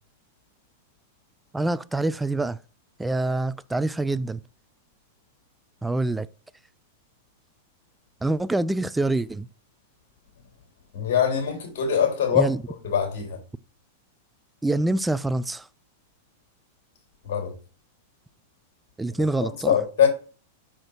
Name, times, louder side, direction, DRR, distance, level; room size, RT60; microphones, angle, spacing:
voice 1, 1.5-2.6 3.0-4.4 5.8-6.3 8.2-9.5 12.3-12.6 14.6-15.7 19.0-19.7, right 2 dB, 10° right, 0.4 m, -25 dB
voice 2, 10.9-13.4 17.2-17.5 19.4-20.1, left 8 dB, 55° left, 3.0 m, -23 dB
5.8 x 4.9 x 4.5 m
figure-of-eight pair, 95°, 0 cm